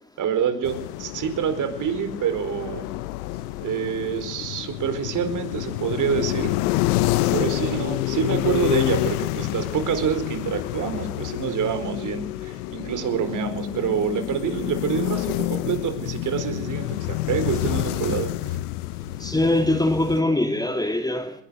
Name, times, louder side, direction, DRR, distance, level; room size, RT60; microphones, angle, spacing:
voice 1, 0.2-2.9 3.6-6.5 7.3-18.6, right 7 dB, 40° right, 4.6 m, -27 dB
sound 1, 0.6-20.2, left 17 dB, 75° left, 1.2 m, -28 dB
voice 2, 19.2-21.3, left 1 dB, 10° left, 2.7 m, -22 dB
22.0 x 19.0 x 6.4 m
supercardioid pair, 105°, 46 cm